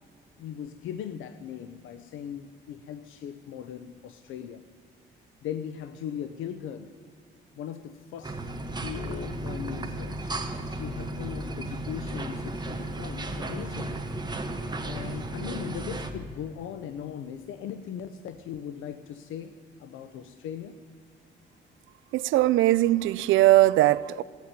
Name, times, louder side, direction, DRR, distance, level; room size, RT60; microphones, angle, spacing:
voice 1, 0.4-4.6 5.4-6.9 7.6-8.5 8.8-10.4 10.7-14.0 14.9-19.5 19.8-20.8, left 9 dB, 85° left, 0.7 m, -39 dB
sound 1, 8.2-16.1, right 1 dB, 20° right, 1.5 m, -34 dB
voice 2, 22.1-24.2, right 16 dB, 80° right, 0.4 m, -20 dB
17.0 x 8.3 x 9.7 m
cardioid pair, 90°, 20 cm